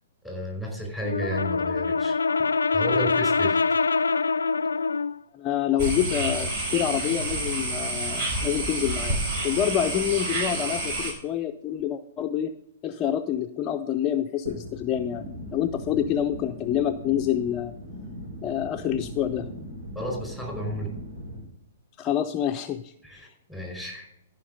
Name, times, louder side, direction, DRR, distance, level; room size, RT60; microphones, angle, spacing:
voice 1, 0.2-2.2 2.7-3.6 19.9-20.9 23.0-24.1, equal, 5° right, 1 dB, 4.7 m, -32 dB
Brass instrument, 1.0-5.2, left 4 dB, 85° left, 0.3 m, -24 dB
voice 2, 5.3-9.2 9.4-12.5 12.8-15.2 15.5-17.7 18.4-19.5 22.0-23.3, left 10 dB, 25° left, 6 dB, 0.5 m, -27 dB
sound 1, 5.8-11.1, right 2 dB, 45° right, 4.7 m, -29 dB
sound 2, 14.5-21.4, equal, 80° right, 4.3 m, -39 dB
14.0 x 5.7 x 5.4 m, 0.80 s
hypercardioid pair, 120°, 0 cm